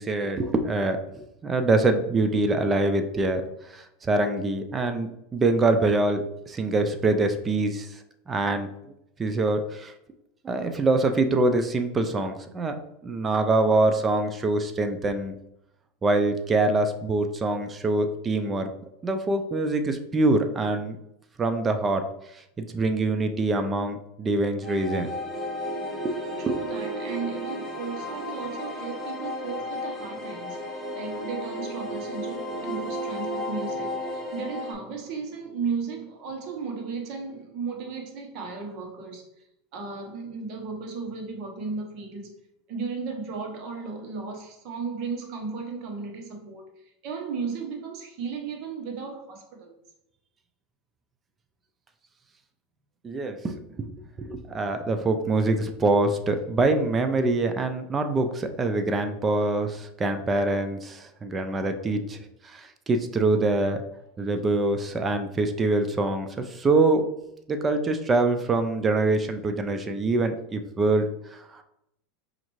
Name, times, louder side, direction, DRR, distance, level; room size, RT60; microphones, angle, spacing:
voice 1, 0.0-8.7 9.2-9.9 10.4-12.8 13.0-15.4 16.0-18.7 19.0-21.0 21.4-22.0 22.3-25.1 26.0-26.6 53.0-53.9 54.2-62.2 62.4-63.8 64.2-67.1 67.5-71.6, right 2 dB, 20° right, 0.4 m, -25 dB
sound 1, 24.6-34.7, equal, 5° left, 1.2 m, -33 dB
voice 2, 26.4-39.3 39.7-42.4 42.7-49.7, right 5 dB, 50° right, 1.0 m, -35 dB
5.1 x 2.5 x 3.1 m
supercardioid pair, 140°, 0 cm